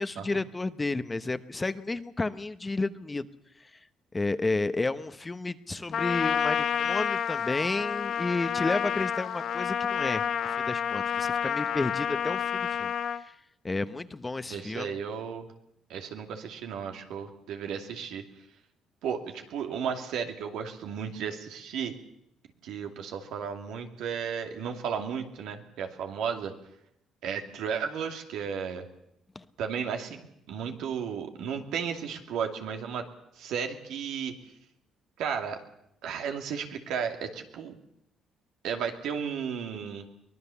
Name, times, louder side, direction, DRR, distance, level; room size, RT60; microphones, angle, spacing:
voice 1, 0.0-3.3 4.1-13.3 13.6-14.9 29.3-29.4, left 3 dB, 20° left, 11 dB, 1.1 m, -31 dB
Trumpet, 5.9-13.2, left 8 dB, 65° left, 1.1 m, -29 dB
voice 2, 14.5-15.5 15.9-18.2 19.0-22.0 22.6-26.5 27.2-28.9 29.6-30.2 30.5-33.1 33.4-34.3 35.2-35.6 36.0-37.8 38.6-40.1, right 7 dB, 80° right, 4 dB, 2.5 m, -34 dB
23.5 x 19.0 x 7.1 m, 0.78 s
cardioid pair, 80°, 0 cm